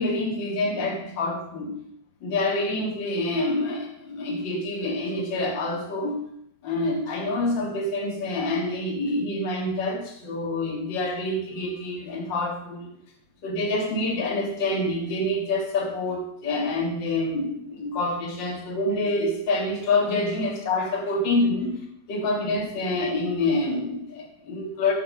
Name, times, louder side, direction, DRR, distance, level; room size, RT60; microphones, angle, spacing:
voice 1, 0.0-1.8 2.2-6.2 6.6-12.9 13.4-21.8 22.1-24.9, left 2 dB, 60° left, 0 dB, 1.1 m, -27 dB
10.0 x 6.6 x 6.3 m, 0.71 s
omnidirectional pair, 5.7 m